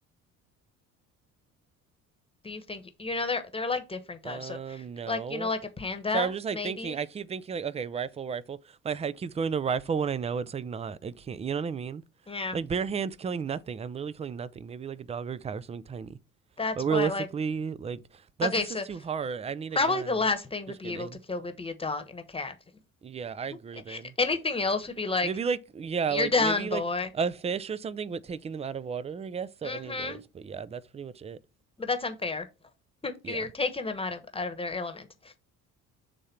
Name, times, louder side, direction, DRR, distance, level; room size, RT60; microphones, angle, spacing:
voice 1, 2.4-7.0 12.3-12.6 16.6-17.3 18.5-18.8 19.7-22.5 23.9-25.3 26.1-27.1 29.6-30.2 31.8-32.5 33.0-35.4, left 3 dB, 15° left, 1.1 m, -31 dB
voice 2, 4.2-5.5 6.1-12.0 12.5-16.2 16.8-20.1 20.8-21.2 23.0-24.1 25.2-26.8 27.1-31.4 33.2-33.5, right 6 dB, 15° right, 0.4 m, -33 dB
6.9 x 3.6 x 4.3 m
hypercardioid pair, 55°, 41 cm